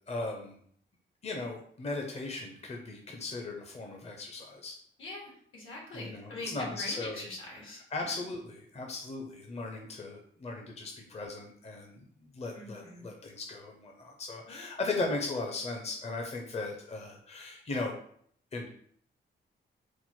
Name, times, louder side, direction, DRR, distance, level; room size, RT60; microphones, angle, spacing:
voice 1, 0.1-0.6 1.2-4.8 5.9-7.3 7.9-12.0 12.3-18.0 18.5-18.7, left 3 dB, 30° left, 1 dB, 0.6 m, -37 dB
voice 2, 5.0-8.2 12.5-13.1 14.5-14.9, left 2 dB, 80° left, -2 dB, 1.5 m, -44 dB
4.4 x 2.0 x 4.3 m, 0.62 s
wide cardioid pair, 110°, 20 cm